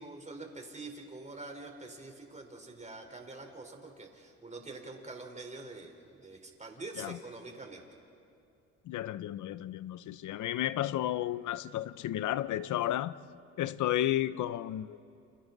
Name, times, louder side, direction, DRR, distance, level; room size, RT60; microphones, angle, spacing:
voice 1, 0.0-7.8, right 2 dB, 25° right, 3 dB, 4.2 m, -45 dB
voice 2, 8.8-13.2 13.6-15.0, left 13 dB, 75° left, 16 dB, 0.8 m, -32 dB
30.0 x 29.0 x 4.0 m, 2.8 s
cardioid pair, 90°, 30 cm